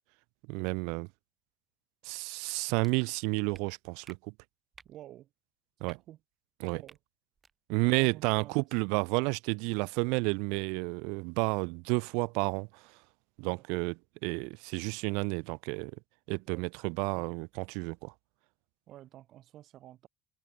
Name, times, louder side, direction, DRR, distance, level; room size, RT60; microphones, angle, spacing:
voice 1, 0.5-1.1 2.0-4.3 5.8-6.0 6.6-6.8 7.7-12.9 13.4-15.9 16.3-18.1, right 33 dB, 80° right, 0.4 m, -31 dB
sound 1, 2.8-2.9 3.5-3.6 4.0-4.2 4.7-4.9 5.8-6.0 6.8-7.0 7.4-7.5, right 5 dB, 20° right, 5.2 m, -54 dB
voice 2, 4.8-5.3 5.8-6.2 6.7-7.0 7.8-8.7 13.5-13.6 16.5-16.7 18.9-20.1, right 13 dB, 50° right, 7.6 m, -51 dB
cardioid pair, 150°, 0 cm